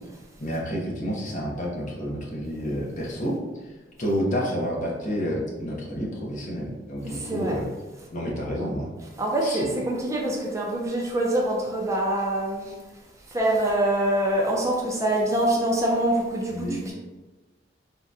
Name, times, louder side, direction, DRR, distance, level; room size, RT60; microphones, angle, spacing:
voice 1, 0.4-3.4 4.0-7.7 8.1-8.9 9.4-9.6 16.5-16.8, equal, 45° left, -3 dB, 0.7 m, -29 dB
voice 2, 7.0-7.6 9.2-12.7 13.3-16.9, right 1 dB, 15° right, -3 dB, 0.4 m, -25 dB
3.6 x 2.2 x 2.6 m, 1.2 s
head